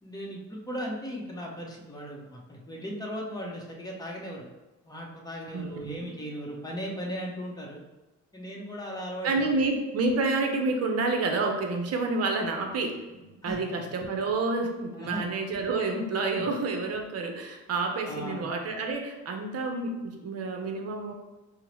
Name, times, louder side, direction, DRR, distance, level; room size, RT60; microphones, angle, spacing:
voice 1, 0.0-4.5 4.8-7.8 8.3-9.5 13.4-13.8 14.9-15.2 16.4-16.5 18.0-18.5, equal, 15° left, -2 dB, 0.8 m, -37 dB
voice 2, 5.5-6.1 9.2-21.1, right 3 dB, 55° right, 3 dB, 0.7 m, -29 dB
4.5 x 2.1 x 3.0 m, 1.1 s
cardioid pair, 90°, 30 cm